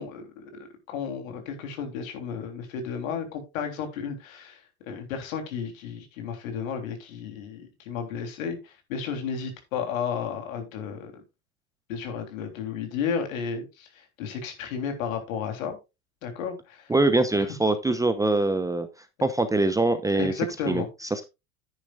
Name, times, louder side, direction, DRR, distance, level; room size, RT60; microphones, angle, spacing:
voice 1, 0.0-11.2 11.9-15.8 16.2-16.9 17.4-17.5 20.1-20.9, left 6 dB, 70° left, 5 dB, 3.5 m, -33 dB
voice 2, 16.9-18.9 19.2-20.3 20.7-21.2, right 2 dB, 10° right, 9 dB, 0.8 m, -23 dB
10.5 x 10.0 x 2.5 m, 0.25 s
hypercardioid pair, 105°, 42 cm